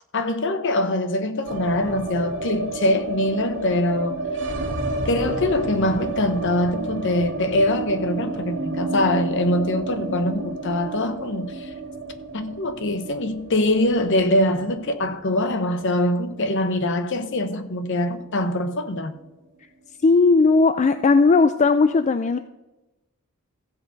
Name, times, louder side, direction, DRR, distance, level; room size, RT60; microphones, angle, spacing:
voice 1, 0.1-4.2 5.0-11.7 12.3-19.2, left 1 dB, 55° left, 0.9 m, -23 dB
sound 1, 1.4-17.6 17.8-17.9 18.2-18.9, right 2 dB, 55° right, 2.0 m, -31 dB
voice 2, 20.0-22.4, left 4 dB, 30° left, 0.3 m, -17 dB
15.0 x 7.8 x 4.0 m
head